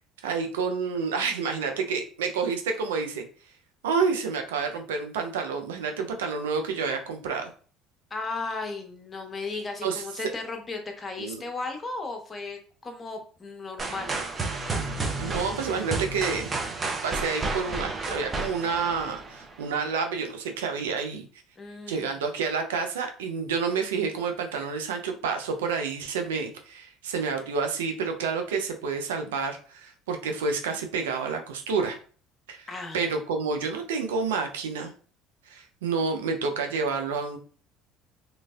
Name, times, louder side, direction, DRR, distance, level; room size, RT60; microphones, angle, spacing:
voice 1, 0.2-3.2 3.8-7.5 9.8-10.0 11.2-11.4 15.2-16.5 17.0-21.2 21.9-32.0 32.5-32.7 32.9-34.9 35.5-37.4, right 5 dB, 85° right, 4 dB, 0.5 m, -29 dB
voice 2, 8.1-14.2 21.6-22.2 32.7-33.2, left 3 dB, 25° left, 4 dB, 0.9 m, -35 dB
sound 1, 13.8-19.7, right 3 dB, 30° right, 0.6 m, -31 dB
3.0 x 2.5 x 2.3 m, 0.41 s
hypercardioid pair, 70°, 0 cm